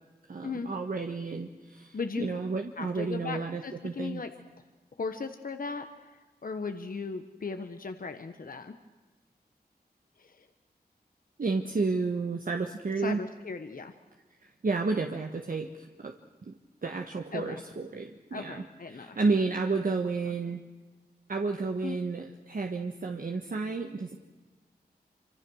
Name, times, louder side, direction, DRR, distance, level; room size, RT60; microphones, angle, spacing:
voice 1, 0.3-4.2 11.4-13.2 14.4-16.1 16.4-16.5 16.8-18.6 18.9-20.6 21.3-24.2, right 4 dB, 55° right, 4 dB, 1.4 m, -31 dB
voice 2, 1.9-2.4 2.8-4.3 5.0-8.8 10.2-10.5 13.0-13.9 17.3-17.6 18.3-19.2 20.3-20.4 21.8-22.0, left 4 dB, 55° left, 7 dB, 1.2 m, -37 dB
26.0 x 26.0 x 6.3 m, 1.2 s
wide cardioid pair, 70°, 17 cm